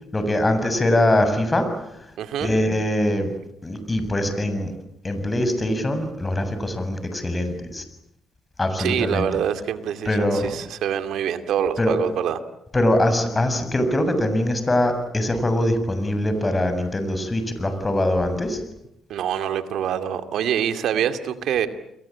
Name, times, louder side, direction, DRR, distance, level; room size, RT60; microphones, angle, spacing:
voice 1, 0.1-2.1 2.4-3.3 3.6-4.7 5.0-7.8 8.6-9.3 10.1-10.5 11.8-11.9 12.7-18.6, left 1 dB, 25° left, 9 dB, 7.5 m, -22 dB
voice 2, 2.2-2.5 8.8-12.4 19.1-21.7, right 9 dB, 75° right, 9 dB, 2.5 m, -25 dB
29.5 x 22.5 x 8.8 m, 0.81 s
supercardioid pair, 70°, 0 cm